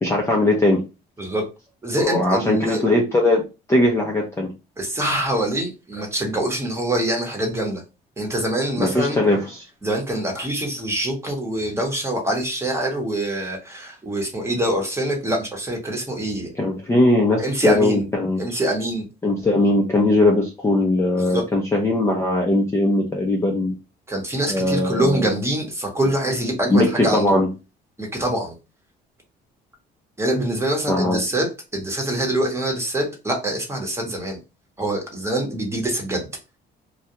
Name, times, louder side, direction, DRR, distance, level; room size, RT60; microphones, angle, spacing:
voice 1, 0.0-0.8 2.0-3.4 3.7-4.5 8.8-9.6 16.6-18.4 19.2-23.7 24.5-25.4 26.7-27.5 30.9-31.2, left 1 dB, 15° left, -1 dB, 0.5 m, -20 dB
voice 2, 1.8-2.8 4.8-7.8 8.2-9.2 9.8-16.5 17.4-18.1 18.4-19.1 21.2-21.5 24.1-27.4 28.0-28.5 30.2-34.4 34.8-36.3, right 1 dB, 15° right, 1 dB, 0.9 m, -24 dB
2.3 x 2.2 x 2.8 m, 0.28 s
cardioid pair, 110°, 19 cm